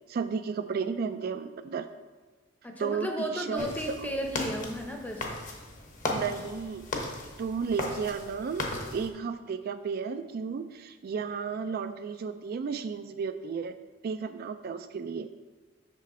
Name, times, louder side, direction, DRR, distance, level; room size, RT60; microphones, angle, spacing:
voice 1, 0.1-1.9 2.8-4.1 6.1-6.8 7.4-13.7 14.0-15.3, right 5 dB, 50° right, 10 dB, 0.3 m, -33 dB
voice 2, 2.6-5.3, equal, 10° left, 3 dB, 0.7 m, -34 dB
sound 1, 3.6-9.1, left 2 dB, 45° left, 1.0 m, -36 dB
6.3 x 6.2 x 4.2 m, 1.3 s
head